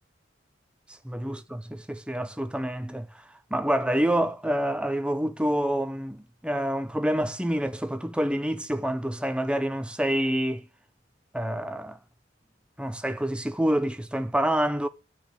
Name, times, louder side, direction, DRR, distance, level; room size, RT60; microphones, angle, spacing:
voice 1, 1.0-3.2 3.5-10.7 11.3-12.0 12.8-14.9, right 1 dB, 5° right, 0.9 m, -27 dB
12.5 x 6.3 x 6.8 m
head